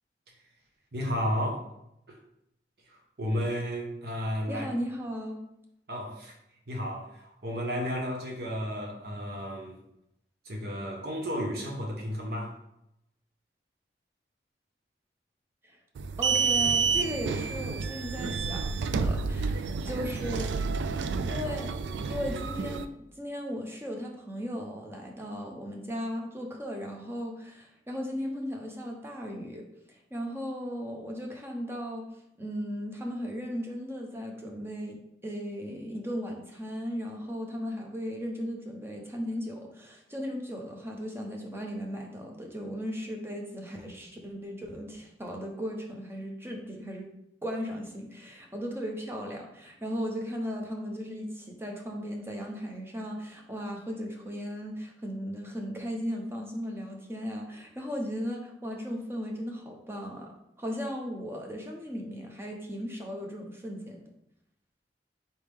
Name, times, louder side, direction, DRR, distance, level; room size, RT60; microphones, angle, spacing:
voice 1, 0.9-1.7 3.2-4.7 5.9-6.3 6.7-9.8 10.4-12.5, equal, 60° right, 0 dB, 1.1 m, -32 dB
voice 2, 4.5-5.4 15.6-15.8 16.2-20.6 21.3-21.8 22.1-22.9 23.2-32.1 32.4-35.0 35.2-47.1 47.4-60.3 60.6-64.1, equal, 15° right, 1 dB, 0.7 m, -36 dB
sound 1, 16.0-22.8, right 5 dB, 90° right, 0.3 m, -29 dB
4.3 x 3.5 x 3.4 m, 0.79 s
head